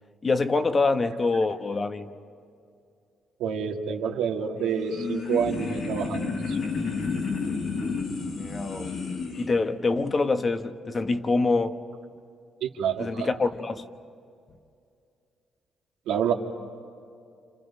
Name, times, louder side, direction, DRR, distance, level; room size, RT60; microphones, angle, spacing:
voice 1, 0.2-2.1 8.3-9.0 9.4-11.8 13.0-13.9, left 3 dB, 35° left, 1.2 m, -25 dB
voice 2, 3.4-6.6 12.6-13.3 16.1-16.3, right 7 dB, 90° right, 2.0 m, -28 dB
sound 1, 4.6-9.5, left 4 dB, 60° left, 3.8 m, -31 dB
30.0 x 28.0 x 5.6 m
cardioid pair, 90°, 0 cm